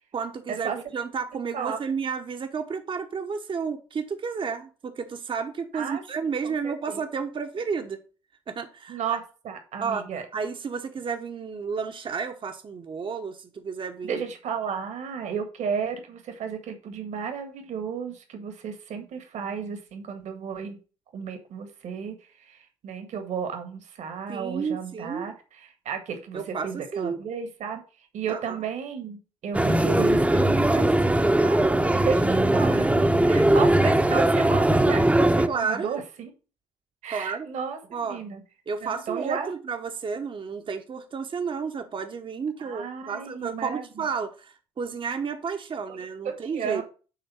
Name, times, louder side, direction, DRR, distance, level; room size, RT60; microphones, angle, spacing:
voice 1, 0.1-8.0 8.5-9.2 9.8-14.2 24.3-25.3 26.3-27.2 28.3-28.6 35.5-36.0 37.1-37.5 37.9-38.2 38.7-46.8, right 5 dB, 40° right, 1.2 m, -32 dB
voice 2, 6.4-7.0 8.9-10.2 14.0-20.8 21.1-31.0 31.3-36.3 37.0-38.4 38.8-39.5 42.6-44.1 46.2-46.8, right 6 dB, 60° right, 1.8 m, -33 dB
sound 1, 29.5-35.5, right 1 dB, 10° right, 1.0 m, -20 dB
10.0 x 3.9 x 5.6 m
hypercardioid pair, 55°, 14 cm